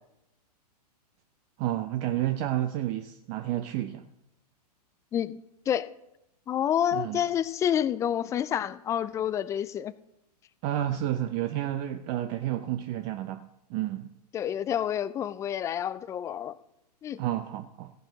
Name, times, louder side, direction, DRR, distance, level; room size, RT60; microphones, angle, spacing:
voice 1, 1.6-4.1 6.9-7.2 10.6-14.1 17.2-17.9, right 13 dB, 35° right, 0.6 m, -30 dB
voice 2, 5.1-5.9 6.5-9.9 14.3-16.6 17.0-17.2, left 10 dB, 15° left, 0.3 m, -28 dB
15.0 x 10.5 x 4.0 m
hypercardioid pair, 125°, 21 cm